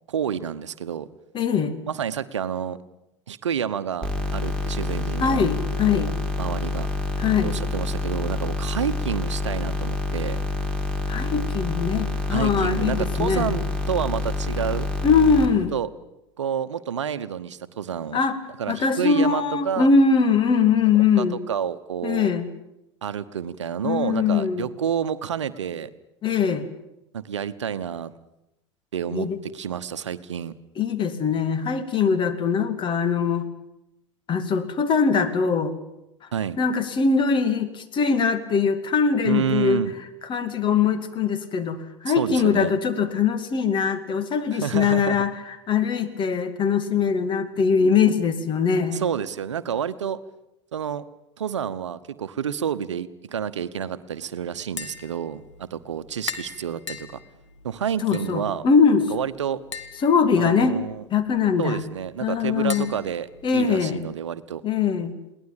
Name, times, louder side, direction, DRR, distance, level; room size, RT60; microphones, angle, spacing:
voice 1, 0.1-1.1 1.9-2.8 3.3-5.5 5.8-6.1 6.4-6.9 7.4-10.4 12.3-14.9 15.7-15.9 16.4-18.2 18.6-19.9 21.2-22.3 23.0-25.9 27.1-28.1 28.9-30.5 36.3-36.6 39.2-39.9 42.1-42.7 44.5-45.2 48.9-50.2 50.7-51.0 51.4-57.2 57.6-58.6 59.1-59.6 60.4-61.0 61.6-63.3 63.5-64.6, right 8 dB, 80° right, 13 dB, 1.0 m, -29 dB
voice 2, 1.3-1.8 5.2-6.1 7.2-7.5 11.1-13.6 15.0-15.7 18.1-18.4 18.7-21.4 22.0-22.5 23.8-24.7 26.2-26.7 29.1-29.4 30.8-33.5 34.3-35.8 36.6-39.8 40.3-49.0 58.0-59.0 60.0-60.7 61.1-61.8 62.2-62.9 63.4-64.0 64.6-65.1, left 6 dB, 35° left, 10 dB, 2.5 m, -22 dB
sound 1, 4.0-15.5, left 3 dB, 5° left, 4.1 m, -27 dB
Tap, 54.6-64.1, left 6 dB, 80° left, 2.0 m, -41 dB
22.0 x 18.5 x 9.0 m, 0.89 s
figure-of-eight pair, 85°, 15 cm